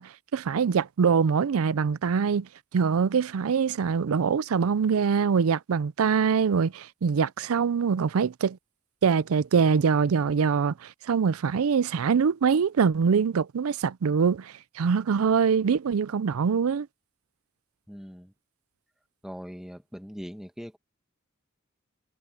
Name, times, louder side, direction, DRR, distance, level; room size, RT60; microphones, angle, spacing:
voice 1, 0.0-8.6 9.0-16.9, right 6 dB, 85° right, 0.4 m, -24 dB
voice 2, 17.9-18.3 19.2-20.8, equal, ahead, 1.6 m, -41 dB
head